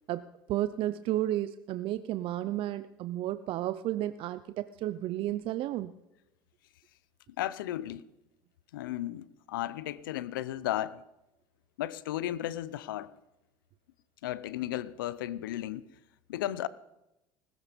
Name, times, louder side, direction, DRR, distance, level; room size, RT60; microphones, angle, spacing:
voice 1, 0.1-5.9, right 13 dB, 55° right, 0.7 m, -32 dB
voice 2, 7.4-8.1 8.7-11.0 11.8-13.1 14.2-15.9 16.3-16.7, left 13 dB, 90° left, 0.8 m, -34 dB
20.0 x 13.5 x 5.3 m
supercardioid pair, 90°, 11 cm